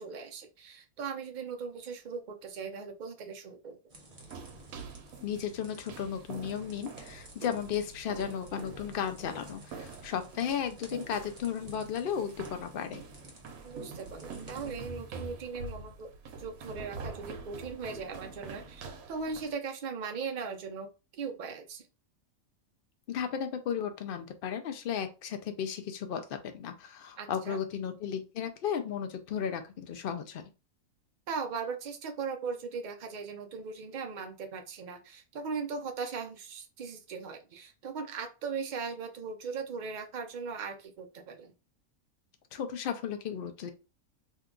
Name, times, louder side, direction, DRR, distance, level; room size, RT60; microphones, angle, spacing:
voice 1, 0.0-3.8 13.6-16.1 16.4-20.9 21.2-21.9 27.2-27.6 31.3-41.5, right 5 dB, 70° right, 5 dB, 0.4 m, -39 dB
sound 1, 3.9-14.8, right 1 dB, 35° right, 0.8 m, -54 dB
sound 2, 4.2-19.5, right 4 dB, 85° right, 1.1 m, -46 dB
voice 2, 5.2-13.0 23.1-30.4 42.5-43.7, left 8 dB, 70° left, 7 dB, 0.5 m, -34 dB
2.7 x 2.3 x 3.7 m, 0.30 s
omnidirectional pair, 1.4 m